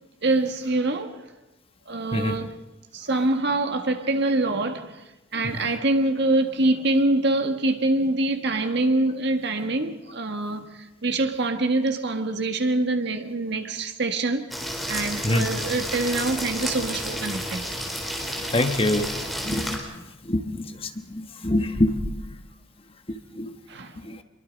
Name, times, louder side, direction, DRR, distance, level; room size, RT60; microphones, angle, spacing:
voice 1, 0.2-1.2 1.9-2.6 2.9-5.0 5.3-14.5 14.9-17.7 23.7-24.0, right 2 dB, 60° right, 1.7 m, -25 dB
sound 1, 14.5-19.8, equal, ahead, 3.9 m, -31 dB
voice 2, 18.5-19.1 19.4-19.8 20.2-22.1 23.1-23.5 24.0-24.2, left 1 dB, 30° left, 1.4 m, -25 dB
24.5 x 22.5 x 5.3 m
head